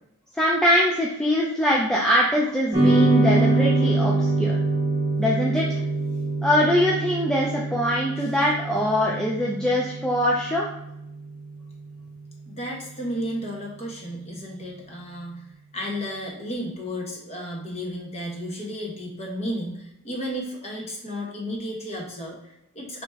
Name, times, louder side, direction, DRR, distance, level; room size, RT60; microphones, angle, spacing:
voice 1, 0.3-4.6 5.2-5.8 6.4-10.7, equal, 5° left, -4 dB, 0.4 m, -22 dB
sound 1, 2.7-11.2, right 2 dB, 10° right, 1.4 m, -24 dB
voice 2, 12.5-15.5 15.7-23.0, equal, 30° left, -1 dB, 1.1 m, -33 dB
4.5 x 2.9 x 3.4 m, 0.82 s
head